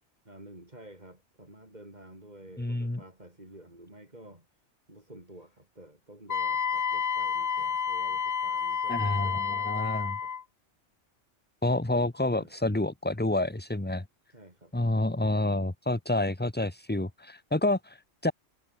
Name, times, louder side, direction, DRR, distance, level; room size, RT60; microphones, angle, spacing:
voice 1, 0.3-9.8 10.2-10.3 12.3-12.5 14.3-15.2, right 1 dB, 35° right, 6.1 m, -51 dB
voice 2, 2.6-3.0 8.9-10.2 11.6-14.0 14.7-18.3, left 2 dB, 10° left, 1.1 m, -28 dB
Wind instrument woodwind instrument, 6.3-10.4, left 7 dB, 40° left, 0.7 m, -30 dB
omnidirectional pair, 1.2 m